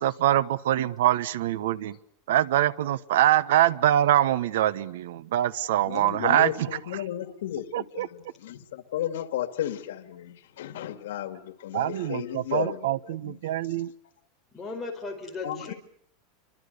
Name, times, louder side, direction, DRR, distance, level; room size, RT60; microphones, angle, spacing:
voice 1, 0.0-2.0 2.3-7.0 7.7-8.1 11.7-13.9, right 12 dB, 75° right, 1.1 m, -24 dB
voice 2, 5.9-12.9 13.2-13.3 15.4-15.7, left 12 dB, 90° left, 2.1 m, -34 dB
voice 3, 14.5-15.7, left 3 dB, 5° left, 5.1 m, -36 dB
28.5 x 24.5 x 6.7 m
supercardioid pair, 175°, 0 cm